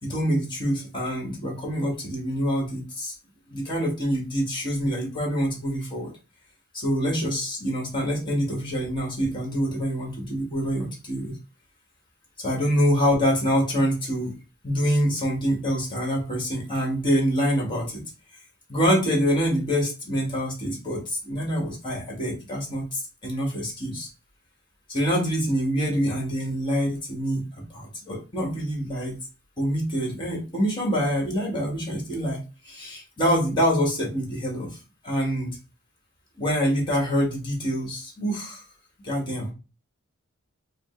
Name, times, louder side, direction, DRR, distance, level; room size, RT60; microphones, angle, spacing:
voice 1, 0.0-3.1 3.5-6.1 6.7-11.3 12.4-14.3 14.6-18.0 18.7-24.1 24.9-27.4 27.7-29.1 29.6-34.8 35.0-35.6 36.4-38.6 39.0-39.5, equal, 25° left, -1 dB, 1.5 m, -26 dB
5.0 x 2.1 x 3.7 m, 0.32 s
head